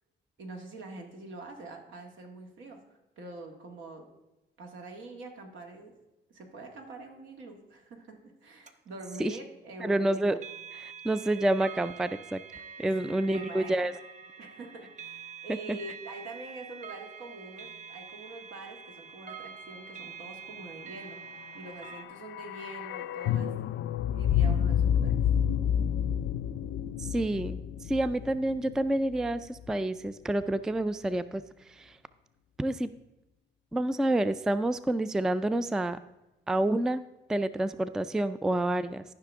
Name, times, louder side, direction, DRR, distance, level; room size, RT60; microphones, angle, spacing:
voice 1, 0.4-2.8 3.2-4.1 4.6-5.9 6.3-10.3 13.0-13.9 14.4-23.7 24.1-25.1, right 2 dB, 75° right, 3 dB, 1.8 m, -45 dB
sound 1, 8.7-8.8 10.4-22.0, right 6 dB, 40° right, 0.8 m, -46 dB
voice 2, 9.8-10.4 10.7-12.4 12.8-13.9 15.7-15.8 27.0-27.6 27.9-31.4 31.8-31.9 32.6-32.9 33.7-36.0 36.5-37.0 37.3-39.0, right 1 dB, 5° right, 14 dB, 0.3 m, -28 dB
sound 2, 21.6-29.7 29.9-30.0, left 9 dB, 70° left, 0.4 m, -29 dB
13.5 x 5.8 x 3.5 m, 1.0 s
cardioid pair, 90°, 20 cm